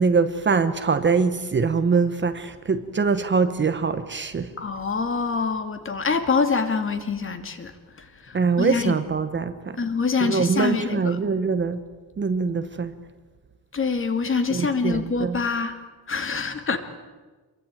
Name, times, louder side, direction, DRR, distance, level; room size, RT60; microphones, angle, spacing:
voice 1, 0.0-4.5 8.3-9.8 10.2-11.8 12.2-12.9 14.5-15.4, right 5 dB, 30° right, 10 dB, 1.1 m, -23 dB
voice 2, 4.6-7.7 8.0-8.9 9.8-11.2 13.7-15.8 16.1-16.8, left 4 dB, 30° left, 8 dB, 2.4 m, -25 dB
27.0 x 23.0 x 9.1 m, 1.3 s
wide cardioid pair, 175°, 39 cm